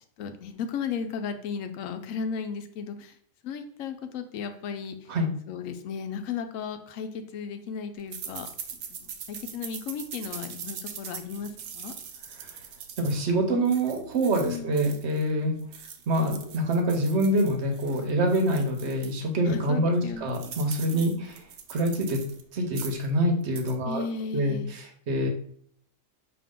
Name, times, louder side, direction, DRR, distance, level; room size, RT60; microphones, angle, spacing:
voice 1, 0.2-3.1 3.4-5.0 5.5-8.5 8.9-11.9 14.4-14.7 19.5-20.5 20.9-21.2 23.8-24.7, left 6 dB, 90° left, 8 dB, 1.0 m, -35 dB
sound 1, 8.1-15.3 15.6-19.2 19.6-19.7 20.0-22.4 22.7-23.1 23.4-23.8, right 7 dB, 85° right, 1.1 m, -42 dB
voice 2, 13.0-15.5 16.1-21.4 21.7-22.2 22.5-24.0 24.3-25.3, right 1 dB, 60° right, 3 dB, 1.1 m, -26 dB
5.2 x 2.8 x 3.6 m, 0.62 s
omnidirectional pair, 1.3 m